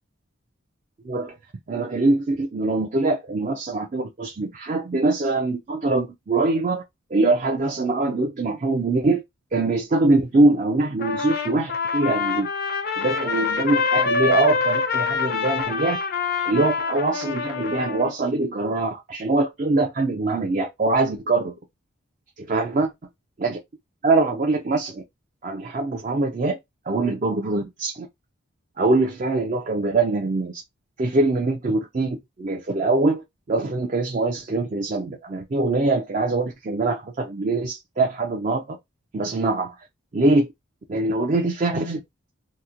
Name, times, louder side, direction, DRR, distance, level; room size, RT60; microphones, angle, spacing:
voice 1, 1.0-1.4 1.7-6.8 7.1-9.2 9.5-12.5 13.0-16.0 16.5-21.5 22.5-22.9 23.4-23.6 24.0-25.0 25.4-26.6 26.9-28.1 28.8-30.6 31.0-38.6 39.1-39.7 40.1-40.5 40.9-42.0, right 2 dB, 35° right, 0.4 m, -23 dB
Trumpet, 11.0-18.1, left 5 dB, 45° left, 0.5 m, -25 dB
2.9 x 2.1 x 3.6 m
head